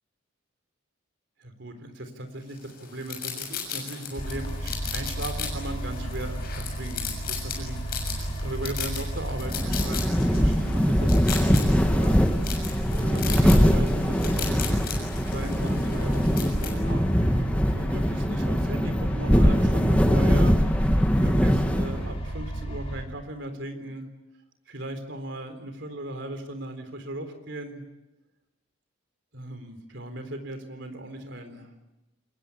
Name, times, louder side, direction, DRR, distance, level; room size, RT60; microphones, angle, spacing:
voice 1, 1.4-12.2 12.9-17.1 17.7-20.6 21.2-24.1 24.7-27.8 29.3-31.7, right 1 dB, 60° right, 7 dB, 3.8 m, -37 dB
sound 1, 2.6-16.7, left 7 dB, 50° left, 6.9 m, -37 dB
sound 2, 4.2-23.0, right 1 dB, 30° left, 5.1 m, -34 dB
sound 3, 9.4-22.2, equal, 5° left, 1.3 m, -22 dB
26.5 x 21.5 x 8.6 m, 1.0 s
head